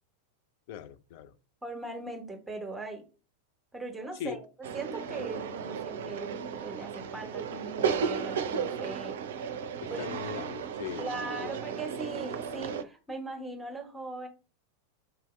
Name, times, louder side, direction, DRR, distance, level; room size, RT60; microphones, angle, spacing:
voice 1, 0.7-1.4 4.1-4.4 9.8-11.6, left 9 dB, 50° left, 0.4 m, -40 dB
voice 2, 1.6-3.0 3.7-4.4 4.7-9.5 9.9-10.0 11.0-14.3, right 3 dB, 5° right, 1.3 m, -40 dB
sound 1, 4.6-12.8, right 6 dB, 60° right, 0.4 m, -34 dB
5.6 x 2.7 x 3.1 m
figure-of-eight pair, 90°, 0 cm